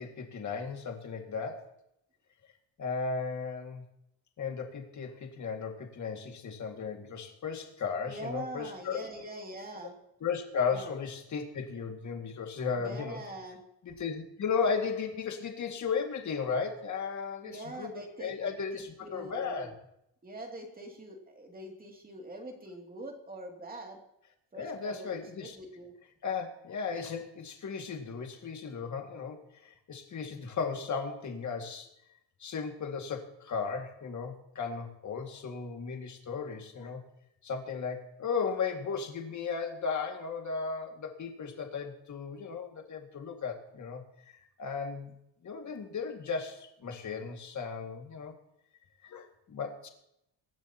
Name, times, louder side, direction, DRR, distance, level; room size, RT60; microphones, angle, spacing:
voice 1, 0.0-1.7 2.8-3.8 4.4-9.0 10.2-13.2 13.8-17.9 18.2-19.7 24.5-25.6 26.2-31.9 32.4-37.0 37.4-45.1 45.4-48.3 49.0-49.9, left 5 dB, 40° left, 3 dB, 2.1 m, -35 dB
voice 2, 8.0-10.0 10.7-10.9 12.7-13.6 17.4-19.7 20.2-24.0 24.5-25.9, right 1 dB, 20° right, 1 dB, 2.6 m, -43 dB
24.0 x 12.0 x 2.9 m, 0.80 s
cardioid pair, 170°, 45 cm